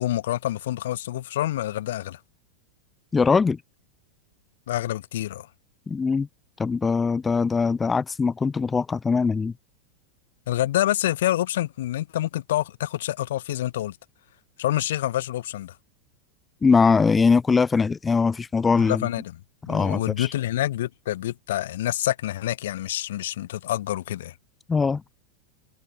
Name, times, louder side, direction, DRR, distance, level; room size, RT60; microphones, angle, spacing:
voice 1, 0.0-2.2 4.7-5.5 10.5-14.0 14.6-15.7 18.8-19.4 19.7-24.3, left 13 dB, 55° left, 1.5 m, -27 dB
voice 2, 3.1-3.6 5.9-6.3 6.6-9.5 16.6-19.1 19.7-20.3 24.7-25.0, left 5 dB, 15° left, 1.0 m, -21 dB
figure-of-eight pair, 90°, 0 cm